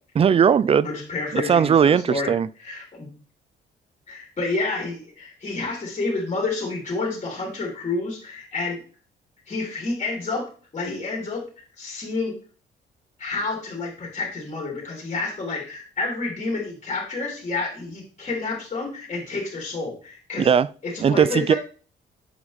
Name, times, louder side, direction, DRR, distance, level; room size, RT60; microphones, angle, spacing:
voice 1, 0.2-0.9 1.3-2.5 20.4-20.7 21.0-21.5, right 7 dB, 30° right, 0.4 m, -18 dB
voice 2, 0.8-2.3 2.6-3.1 4.1-8.8 9.5-10.5 10.7-12.3 13.2-20.6 20.8-21.6, left 3 dB, 35° left, 3.5 m, -29 dB
8.0 x 5.4 x 3.5 m
cardioid pair, 90°, 20 cm